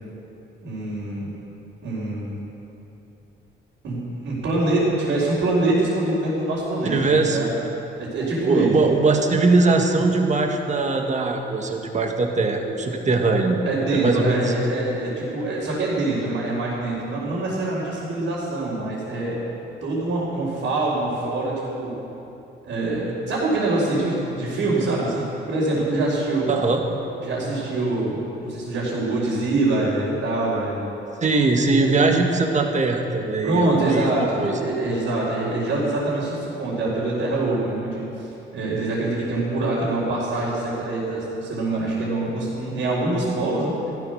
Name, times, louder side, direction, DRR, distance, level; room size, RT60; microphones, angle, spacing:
voice 1, 0.6-1.3 1.8-2.3 3.8-7.5 8.0-8.7 13.6-19.4 19.8-22.0 22.7-26.5 27.2-30.8 31.8-32.0 33.4-38.3 38.5-43.9, right 2 dB, 70° right, -9 dB, 4.5 m, -24 dB
voice 2, 6.9-7.4 8.2-13.6 13.9-14.6 26.5-26.8 31.2-34.6, right 3 dB, 35° right, 3 dB, 1.8 m, -21 dB
15.0 x 12.5 x 6.5 m, 2.9 s
cardioid pair, 90°, 20 cm